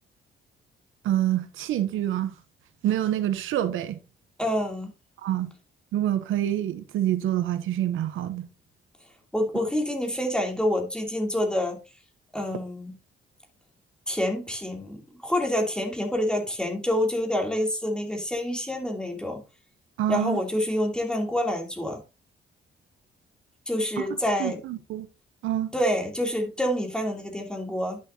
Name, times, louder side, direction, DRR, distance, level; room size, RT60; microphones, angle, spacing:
voice 1, 1.0-2.3 2.8-4.0 5.2-5.5 5.9-8.5 20.0-20.4 24.0-24.1 24.4-25.1 25.4-25.7, right 12 dB, 85° right, 0.9 m, -26 dB
voice 2, 4.4-4.9 9.3-11.8 12.3-12.9 14.1-19.4 20.1-22.0 23.7-24.6 25.7-28.0, left 1 dB, 5° left, 2.9 m, -27 dB
10.5 x 6.7 x 2.8 m
cardioid pair, 90°, 20 cm